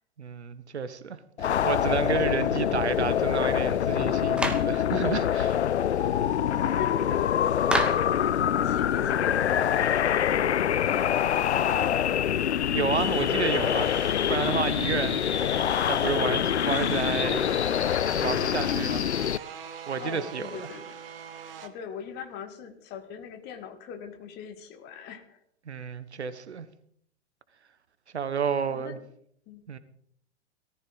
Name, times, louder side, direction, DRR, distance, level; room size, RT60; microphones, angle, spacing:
voice 1, 0.2-5.6 12.4-13.9 14.3-15.2 15.9-17.4 18.2-19.1 19.9-20.7 25.7-26.7 28.1-29.0 29.7-29.8, right 6 dB, 70° right, 1.3 m, -31 dB
sound 1, 1.4-19.4, left 10 dB, 70° left, 0.5 m, -25 dB
Clapping, 4.4-4.7 7.7-8.1, right 1 dB, 5° right, 1.4 m, -27 dB
voice 2, 6.8-7.9 8.5-12.0 20.0-21.0 21.6-25.4 28.7-29.0 29.5-29.7, left 7 dB, 30° left, 1.9 m, -41 dB
sound 2, 12.9-21.7, right 7 dB, 55° right, 1.7 m, -43 dB
18.5 x 13.5 x 4.1 m
figure-of-eight pair, 105°, 35 cm